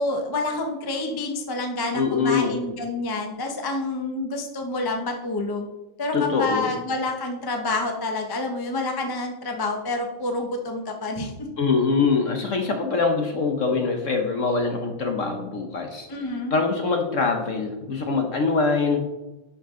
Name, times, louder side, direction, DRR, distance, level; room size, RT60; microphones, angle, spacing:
voice 1, 0.0-5.7 6.0-11.5 16.1-16.5, left 2 dB, 30° left, 3 dB, 0.4 m, -28 dB
voice 2, 1.9-2.6 6.1-6.7 11.6-16.1 16.5-19.0, left 4 dB, 50° left, 3 dB, 1.0 m, -23 dB
10.5 x 5.7 x 3.8 m, 1.0 s
omnidirectional pair, 2.2 m